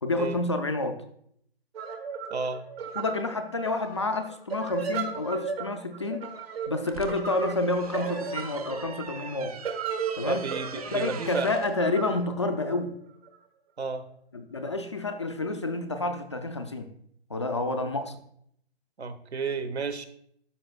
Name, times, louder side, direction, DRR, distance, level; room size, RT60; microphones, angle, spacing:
voice 1, 0.0-1.0 3.0-6.3 6.7-9.5 10.2-10.5 10.9-12.9 14.3-16.9 17.3-18.2, left 2 dB, 30° left, 6 dB, 0.4 m, -29 dB
sound 1, 1.7-13.4, right 6 dB, 65° right, 1.5 m, -36 dB
voice 2, 2.3-2.6 10.3-11.5 13.8-14.0 17.8-17.9 19.0-20.1, right 4 dB, 85° right, 10 dB, 1.0 m, -32 dB
sound 2, 6.6-11.7, right 6 dB, 35° right, 0.5 m, -43 dB
12.5 x 5.1 x 2.3 m, 0.68 s
hypercardioid pair, 150°, 32 cm